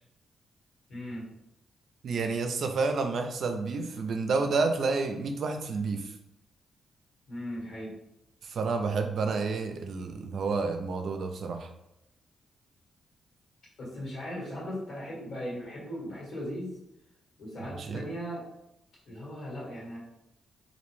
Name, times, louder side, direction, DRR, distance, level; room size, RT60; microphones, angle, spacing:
voice 1, 0.9-1.3 7.3-7.9 13.8-16.8 17.4-18.4 19.0-20.0, equal, 75° left, -6 dB, 1.5 m, -38 dB
voice 2, 2.0-6.1 8.4-11.7 17.8-18.0, right 4 dB, 65° right, 6 dB, 0.3 m, -30 dB
2.5 x 2.1 x 3.0 m, 0.85 s
cardioid pair, 75°, 0 cm